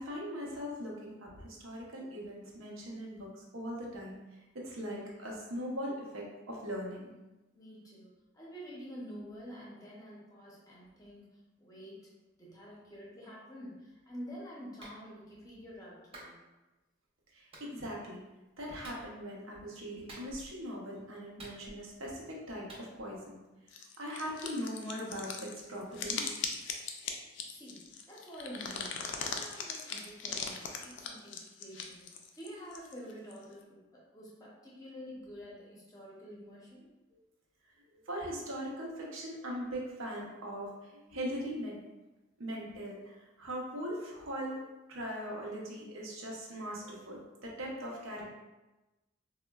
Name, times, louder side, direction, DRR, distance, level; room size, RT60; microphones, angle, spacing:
voice 1, 0.0-4.4 4.6-7.1 17.3-18.3 18.6-23.4 24.0-26.4 37.1-37.2 37.9-41.9 42.4-48.3, equal, 90° right, -3 dB, 0.7 m, -40 dB
voice 2, 7.5-12.1 12.4-16.4 27.5-36.9, equal, 20° left, -5 dB, 0.6 m, -48 dB
Clapping, 14.8-15.0 16.1-16.3 17.5-17.7 18.8-19.1 20.1-20.6 21.4-22.0 22.7-22.9, right 1 dB, 30° right, 0.6 m, -49 dB
sound 1, 23.7-33.4, left 5 dB, 60° left, 0.3 m, -39 dB
3.5 x 2.1 x 2.2 m, 1.1 s
head